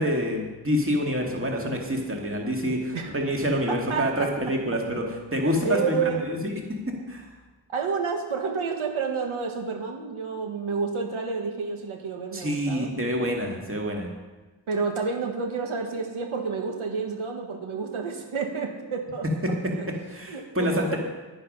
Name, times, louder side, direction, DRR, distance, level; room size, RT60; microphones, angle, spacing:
voice 1, 0.0-7.3 12.3-14.1 19.6-19.7 20.1-21.0, equal, 25° right, 0 dB, 2.1 m, -27 dB
voice 2, 3.7-4.3 5.4-6.3 7.7-12.9 14.7-19.2 19.7-19.9 20.3-21.0, right 5 dB, 85° right, 2 dB, 1.5 m, -30 dB
10.5 x 10.0 x 5.5 m, 1.2 s
wide cardioid pair, 100°, 48 cm